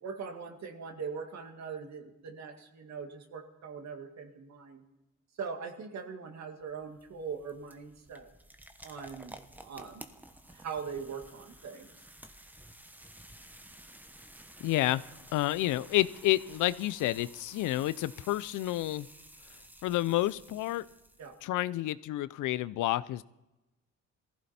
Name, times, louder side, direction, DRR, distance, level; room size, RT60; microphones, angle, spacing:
voice 1, 0.0-4.8 5.4-8.3 8.8-9.4 9.6-10.1 10.5-11.9 21.2-21.4, right 6 dB, 60° right, 4 dB, 2.2 m, -41 dB
sound 1, 6.6-21.5, right 1 dB, 5° right, 1.1 m, -53 dB
voice 2, 14.6-15.0 15.3-19.1 19.8-20.8 21.4-23.2, left 15 dB, 85° left, 18 dB, 0.6 m, -29 dB
19.0 x 15.0 x 4.3 m, 0.99 s
cardioid pair, 90°, 30 cm